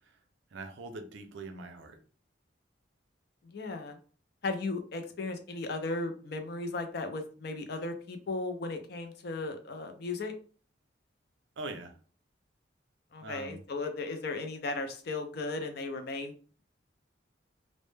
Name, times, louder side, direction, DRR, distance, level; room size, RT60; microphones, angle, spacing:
voice 1, 0.5-2.0 11.6-11.9 13.2-13.6, right 2 dB, 70° right, 6 dB, 0.4 m, -42 dB
voice 2, 3.4-4.0 4.4-10.3 13.1-16.3, left 3 dB, 55° left, 6 dB, 0.4 m, -36 dB
2.1 x 2.0 x 3.1 m, 0.41 s
head